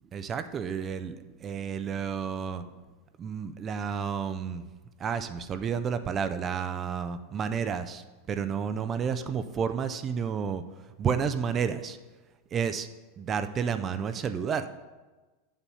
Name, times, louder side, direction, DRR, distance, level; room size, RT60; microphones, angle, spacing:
voice 1, 0.1-2.6 3.2-4.7 5.0-10.6 11.0-12.0 12.5-12.9 13.2-14.7, right 7 dB, 20° right, 10 dB, 0.3 m, -31 dB
8.2 x 7.2 x 5.5 m, 1.2 s
supercardioid pair, 180°, 0 cm